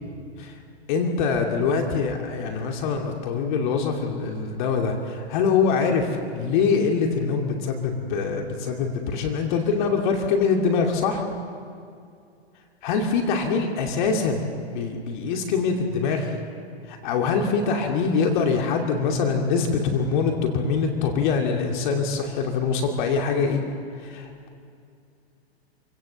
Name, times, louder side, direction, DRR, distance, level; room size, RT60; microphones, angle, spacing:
voice 1, 0.9-11.2 12.8-16.4 16.9-23.6 24.0-24.3, left 5 dB, 45° left, 3 dB, 2.7 m, -24 dB
27.0 x 17.0 x 7.2 m, 2.4 s
hypercardioid pair, 115°, 32 cm